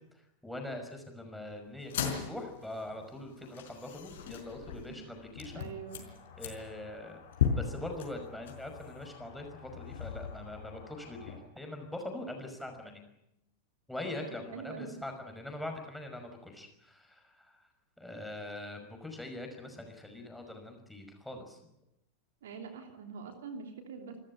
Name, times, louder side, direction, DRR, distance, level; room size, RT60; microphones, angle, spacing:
voice 1, 0.4-5.7 6.4-7.2 7.6-13.0 13.9-17.6 18.0-21.6, left 1 dB, ahead, 3 dB, 5.6 m, -42 dB
sound 1, 1.8-11.4, left 8 dB, 60° left, 4.8 m, -38 dB
voice 2, 5.5-6.0 14.2-15.0 22.4-24.2, right 6 dB, 60° right, 5 dB, 3.1 m, -44 dB
28.0 x 14.0 x 9.9 m, 0.81 s
figure-of-eight pair, 90°, 0 cm